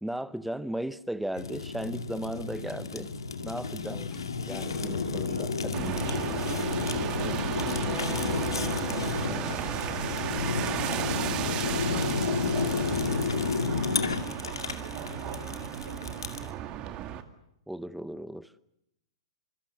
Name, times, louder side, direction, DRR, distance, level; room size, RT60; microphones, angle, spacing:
voice 1, 0.0-3.1 3.4-4.1 4.4-5.8 7.2-7.4 9.2-9.8 17.7-18.5, right 1 dB, ahead, 16 dB, 0.9 m, -36 dB
Fire, 1.4-16.5, left 4 dB, 85° left, 2.3 m, -31 dB
sound 1, 3.9-11.6, left 7 dB, 20° left, 1.6 m, -46 dB
voice 2, 5.0-6.4 6.9-7.9 8.6-10.7 11.7-13.3 14.0-16.4, right 3 dB, 85° right, -3 dB, 7.4 m, -44 dB
sound 2, 5.7-17.2, right 11 dB, 35° right, 2.1 m, -34 dB
26.5 x 24.0 x 6.8 m, 0.81 s
hypercardioid pair, 115°, 2 cm